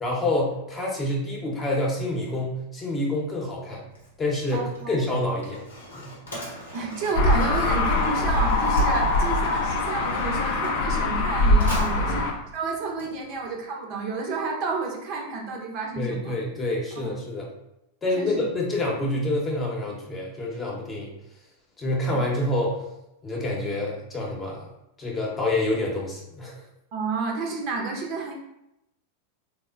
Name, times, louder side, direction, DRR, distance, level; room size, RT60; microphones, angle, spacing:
voice 1, 0.0-3.8 4.2-5.6 5.9-6.1 12.1-12.3 16.0-17.5 18.0-21.1 21.8-22.8 23.2-24.7 25.0-26.6, left 1 dB, 20° left, -2 dB, 0.8 m, -27 dB
Mechanisms, 3.9-13.6, left 1 dB, 80° left, 0.9 m, -41 dB
voice 2, 4.5-4.9 6.7-16.3 17.0-17.1 18.1-18.4 26.9-28.3, right 3 dB, 50° right, 1 dB, 0.5 m, -30 dB
sound 1, 7.1-12.3, left 2 dB, 60° left, 0.4 m, -22 dB
3.5 x 2.0 x 2.4 m, 0.85 s
hypercardioid pair, 95°, 0 cm